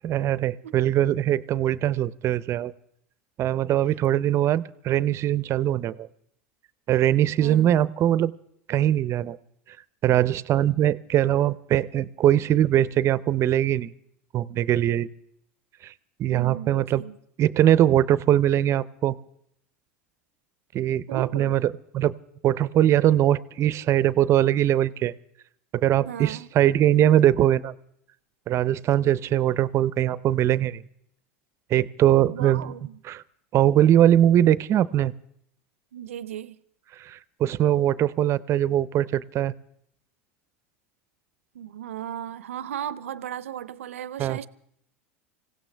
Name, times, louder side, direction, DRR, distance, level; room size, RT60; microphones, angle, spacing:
voice 1, 0.0-2.7 3.4-6.1 6.9-8.3 8.7-9.4 10.0-13.9 14.3-15.1 15.8-15.9 16.2-17.0 17.4-19.2 20.7-22.1 22.4-25.1 25.7-27.7 28.5-30.8 31.7-32.7 33.0-33.2 33.5-35.1 37.0-39.5 44.2-44.4, right 12 dB, 40° right, 0.6 m, -21 dB
voice 2, 7.4-7.7 16.3-17.2 21.1-21.6 26.0-26.5 32.2-33.0 35.9-36.6 41.5-44.5, right 10 dB, 85° right, 0.6 m, -36 dB
26.0 x 16.5 x 3.4 m
hypercardioid pair, 90°, 7 cm